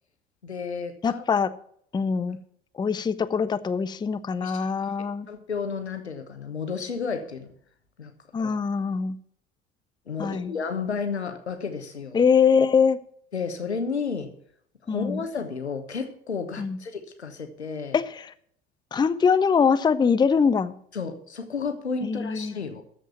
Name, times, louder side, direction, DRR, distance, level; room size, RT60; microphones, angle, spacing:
voice 1, 0.4-1.2 4.4-4.9 5.3-7.5 8.0-8.1 8.4-8.5 10.1-12.2 13.3-14.3 14.8-18.0 20.9-22.8, left 5 dB, 80° left, 7 dB, 1.3 m, -32 dB
voice 2, 1.0-1.5 1.9-2.4 2.7-5.3 8.3-9.2 10.2-10.5 12.1-13.0 14.9-15.2 16.6-16.8 17.9-18.3 18.9-20.8 22.0-22.5, left 6 dB, 15° left, 13 dB, 0.6 m, -23 dB
13.5 x 5.1 x 8.1 m, 0.63 s
figure-of-eight pair, 60°, 32 cm